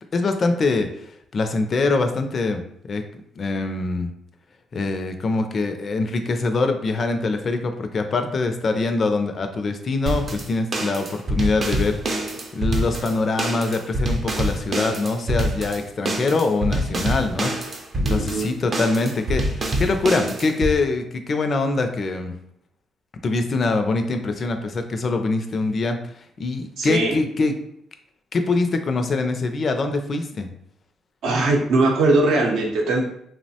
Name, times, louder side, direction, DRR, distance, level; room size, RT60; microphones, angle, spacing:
voice 1, 0.1-0.9 1.3-2.6 2.9-3.0 3.4-4.1 4.7-12.0 12.5-22.3 23.2-26.0 26.4-27.5 28.3-30.5, left 3 dB, 45° left, 6 dB, 0.4 m, -23 dB
sound 1, 10.1-20.7, right 1 dB, 40° right, 0.5 m, -26 dB
voice 2, 18.0-18.5 26.8-27.1 31.2-33.0, right 2 dB, 80° right, 0 dB, 0.6 m, -20 dB
2.9 x 2.0 x 2.7 m, 0.72 s
cardioid pair, 90°, 0 cm